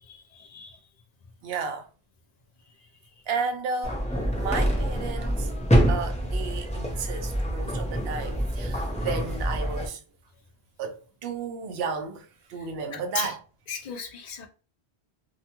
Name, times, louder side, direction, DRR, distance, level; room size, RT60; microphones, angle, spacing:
voice 1, 0.0-0.8 12.6-12.7 12.9-13.3 13.7-14.5, left 6 dB, 55° left, 0.5 m, -36 dB
voice 2, 1.4-1.9 3.3-4.0 4.3-5.5 5.9-10.0 10.8-13.4, right 5 dB, 70° right, 0.8 m, -33 dB
sound 1, 3.8-9.9, equal, 10° left, 0.5 m, -26 dB
2.7 x 2.2 x 2.8 m
omnidirectional pair, 1.1 m